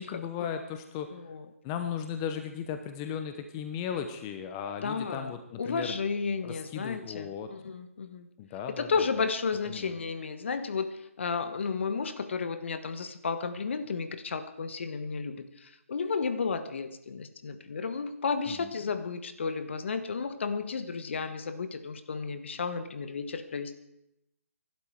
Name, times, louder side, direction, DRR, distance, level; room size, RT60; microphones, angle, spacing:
voice 1, 0.0-1.1 1.6-5.9 6.4-7.5 8.4-9.2 9.6-9.9 18.5-18.7, left 8 dB, 20° left, 8 dB, 0.9 m, -36 dB
voice 2, 1.1-1.4 4.8-5.3 5.6-8.3 8.7-23.7, left 5 dB, 55° left, 10 dB, 1.3 m, -33 dB
24.5 x 12.0 x 4.7 m, 0.83 s
figure-of-eight pair, 150°, 8 cm